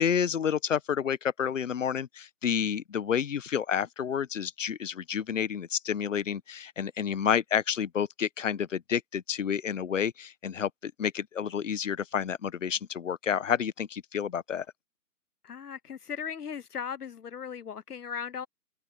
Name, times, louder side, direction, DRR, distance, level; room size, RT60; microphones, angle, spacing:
voice 1, 0.0-14.6, left 8 dB, 50° left, 1.1 m, -29 dB
voice 2, 15.4-18.5, left 7 dB, 75° left, 0.9 m, -37 dB
figure-of-eight pair, 150°, 47 cm